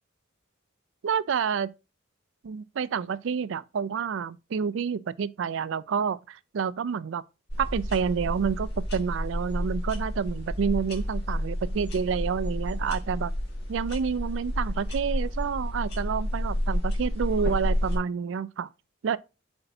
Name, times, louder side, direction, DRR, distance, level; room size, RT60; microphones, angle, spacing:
voice 1, 1.0-1.7 2.4-7.2 7.6-13.3 13.7-18.7 19.0-19.2, right 6 dB, 65° right, 0.4 m, -29 dB
sound 1, 7.5-18.0, equal, 55° left, 2.4 m, -30 dB
7.9 x 4.4 x 2.7 m
head